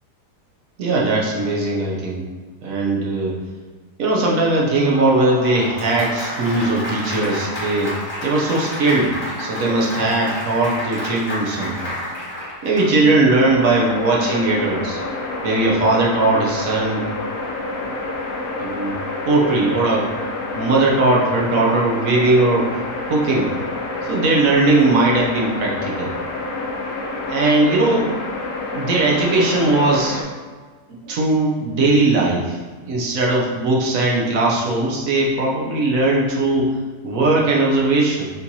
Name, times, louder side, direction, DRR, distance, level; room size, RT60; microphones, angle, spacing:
voice 1, 0.8-2.3 2.6-3.3 4.0-7.9 8.2-11.9 12.6-15.0 15.4-17.0 18.6-18.9 19.3-20.1 20.5-22.7 23.1-23.5 24.1-26.1 27.3-28.1 28.7-30.2 30.9-32.6 32.9-36.7 37.0-38.3, right 2 dB, 60° right, -2 dB, 1.1 m, -19 dB
Applause, 4.5-13.2, left 1 dB, 20° left, 0.9 m, -30 dB
sound 1, 13.4-30.2, left 2 dB, 65° left, 0.9 m, -28 dB
4.3 x 3.7 x 2.7 m, 1.4 s
omnidirectional pair, 1.8 m